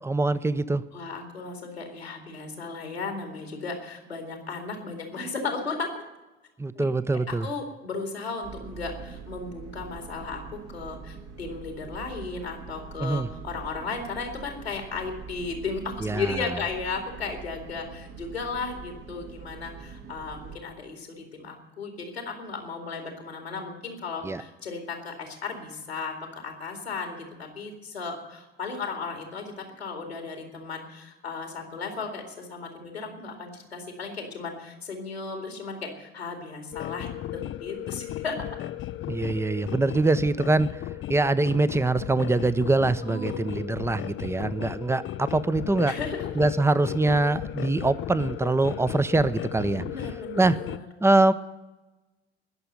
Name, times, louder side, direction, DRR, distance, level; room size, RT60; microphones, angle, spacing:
voice 1, 0.0-0.8 6.6-7.5 13.0-13.3 16.0-16.4 24.2-24.4 39.1-40.8 41.1-45.9 46.4-49.8 50.3-50.6 51.0-51.3, right 2 dB, 10° right, 15 dB, 0.7 m, -24 dB
voice 2, 0.9-6.0 6.8-6.9 7.3-38.5 42.7-43.8 45.9-46.3 49.7-50.9, left 4 dB, 90° left, 4 dB, 2.3 m, -35 dB
sound 1, 8.4-20.6, right 6 dB, 60° right, 2.1 m, -43 dB
sound 2, 36.7-50.8, left 13 dB, 40° left, 0.5 m, -36 dB
20.5 x 6.9 x 9.1 m, 1.1 s
figure-of-eight pair, 55°, 31 cm